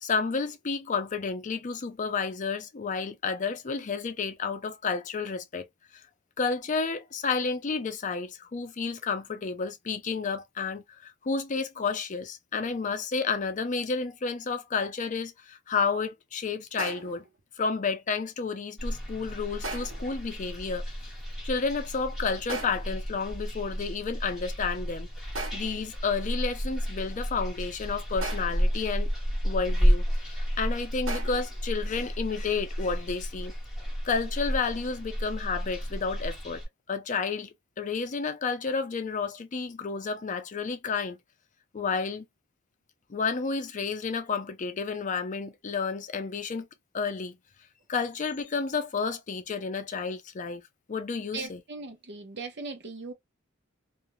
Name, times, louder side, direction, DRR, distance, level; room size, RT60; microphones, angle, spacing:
voice 1, 0.0-5.7 6.4-17.2 17.6-20.8 21.4-25.1 25.5-29.1 29.4-33.5 34.0-36.6 36.9-41.2 41.7-42.3 43.1-46.7 46.9-47.4 47.9-50.6 50.9-51.6, left 5 dB, 40° left, 0.4 m, -31 dB
sound 1, 16.8-17.3 19.6-20.1 22.5-23.0 25.3-25.9 28.2-28.7 31.1-31.6, right 2 dB, 75° right, 1.1 m, -37 dB
sound 2, 18.8-36.7, equal, ahead, 1.1 m, -31 dB
voice 2, 51.3-53.1, right 4 dB, 60° right, 0.8 m, -38 dB
2.5 x 2.2 x 2.9 m
head